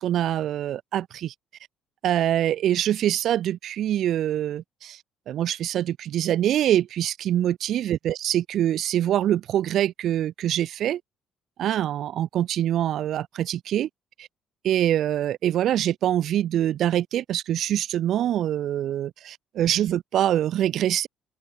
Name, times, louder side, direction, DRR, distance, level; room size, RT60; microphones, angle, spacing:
voice 1, 0.0-1.3 2.0-5.0 5.3-11.0 11.6-13.9 14.2-14.3 14.6-21.1, right 11 dB, 55° right, 2.1 m, -24 dB
cardioid pair, 150°, 0 cm